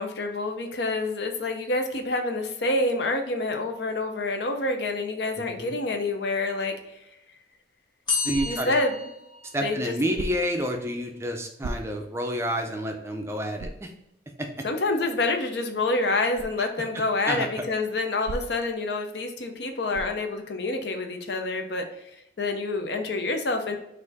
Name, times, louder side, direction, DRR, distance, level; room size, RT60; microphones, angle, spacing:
voice 1, 0.0-6.7 8.4-9.0 9.6-9.9 14.6-21.8 22.4-23.8, left 2 dB, 65° left, 5 dB, 0.6 m, -27 dB
sound 1, 8.1-10.0, left 5 dB, 25° left, 1.4 m, -31 dB
voice 2, 8.2-8.7 9.5-13.9 14.4-14.5 17.2-17.6, equal, 15° right, 3 dB, 0.4 m, -29 dB
sound 2, 8.3-8.8 10.1-10.6 11.6-12.2 12.7-12.8 13.6-13.9 16.3-16.6 18.2-18.8 19.9-20.3, right 2 dB, 85° right, 0.4 m, -36 dB
4.2 x 2.6 x 4.0 m, 0.85 s
head